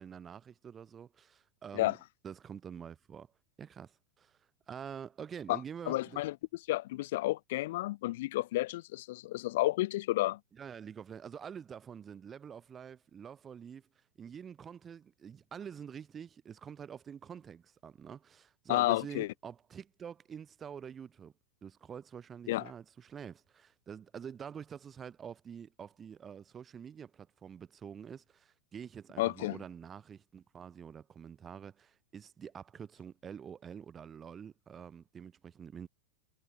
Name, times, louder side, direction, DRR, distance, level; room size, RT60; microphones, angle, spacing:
voice 1, 0.0-2.0 2.2-3.3 3.6-4.4 4.7-6.2 10.5-13.9 14.2-21.3 21.6-35.9, right 7 dB, 20° right, 2.8 m, -47 dB
voice 2, 5.9-6.4 6.7-10.4 18.7-19.3 22.5-22.7 29.2-29.6, left 17 dB, 55° left, 0.6 m, -31 dB
figure-of-eight pair, 90°, 0 cm